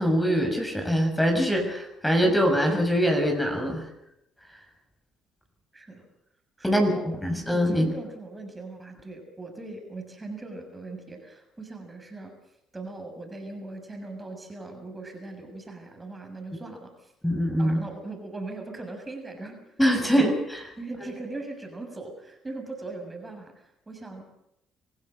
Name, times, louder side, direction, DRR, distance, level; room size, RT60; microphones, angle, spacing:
voice 1, 0.0-3.8 6.6-6.9 7.2-7.9 17.2-17.8 19.8-20.3, equal, 5° left, 3 dB, 6.4 m, -23 dB
voice 2, 5.7-6.1 6.6-7.4 7.7-12.3 12.7-17.1 17.6-19.6 20.0-20.2 20.8-24.2, right 2 dB, 20° right, 4 dB, 6.6 m, -40 dB
26.0 x 16.0 x 8.0 m, 0.81 s
supercardioid pair, 70°, 0 cm